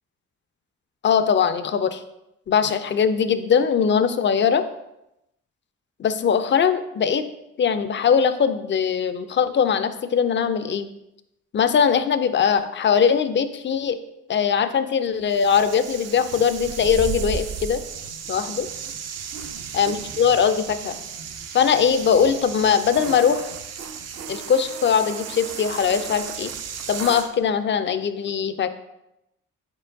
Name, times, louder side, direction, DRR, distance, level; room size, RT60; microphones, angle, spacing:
voice 1, 1.0-2.0 2.5-4.6 6.0-7.3 7.6-10.9 11.5-14.0 14.3-17.8 18.3-18.7 19.7-21.0 21.5-23.5 24.3-26.5 26.9-28.7, left 7 dB, 35° left, 11 dB, 0.4 m, -21 dB
sound 1, 15.3-27.3, right 7 dB, 50° right, 0.5 m, -34 dB
4.5 x 4.4 x 2.6 m, 0.87 s
supercardioid pair, 55°, 33 cm